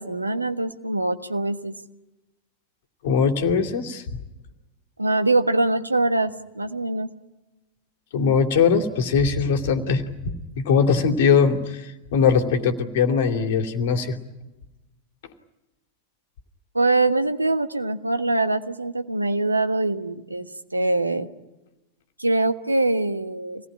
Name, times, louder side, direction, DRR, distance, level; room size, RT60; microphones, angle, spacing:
voice 1, 0.0-1.8 5.0-7.1 16.7-21.3 22.2-23.7, right 2 dB, 80° right, 9 dB, 1.4 m, -23 dB
voice 2, 3.0-4.0 8.1-14.2, left 6 dB, 55° left, 6 dB, 2.7 m, -21 dB
26.5 x 18.5 x 9.9 m, 0.99 s
figure-of-eight pair, 90°, 0 cm